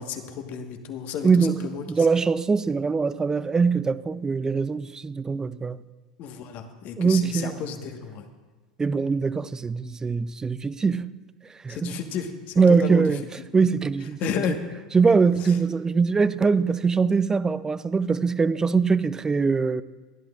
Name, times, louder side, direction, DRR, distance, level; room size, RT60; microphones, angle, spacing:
voice 1, 0.0-2.1 6.2-8.2 11.7-13.1 14.2-14.6 15.4-15.5, left 7 dB, 45° left, 1.3 m, -32 dB
voice 2, 1.2-5.8 7.0-7.5 8.8-11.2 11.6-12.0 12.6-13.2 13.5-14.3 14.9-19.8, right 5 dB, 15° right, 0.4 m, -22 dB
28.5 x 11.0 x 2.4 m
hypercardioid pair, 85°, 4 cm